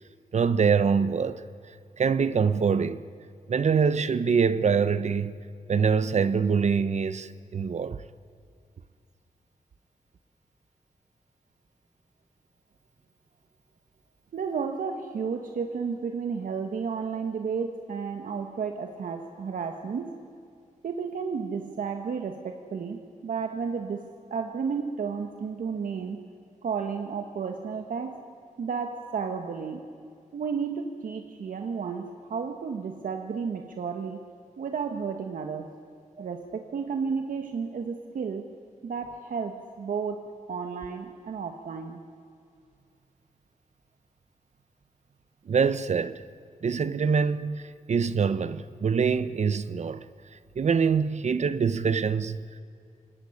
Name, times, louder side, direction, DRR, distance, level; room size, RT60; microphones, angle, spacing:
voice 1, 0.3-1.4 2.0-3.0 3.5-5.3 5.7-8.0 36.2-36.3 45.5-46.2 46.6-50.0 50.6-52.4, right 6 dB, 60° right, 1.0 m, -24 dB
voice 2, 14.3-20.2 20.8-26.2 26.6-28.2 28.6-29.8 30.3-34.3 34.6-35.7 36.2-38.5 38.8-42.0, right 6 dB, 85° right, 1.6 m, -32 dB
26.5 x 21.0 x 9.9 m
wide cardioid pair, 110°, 14 cm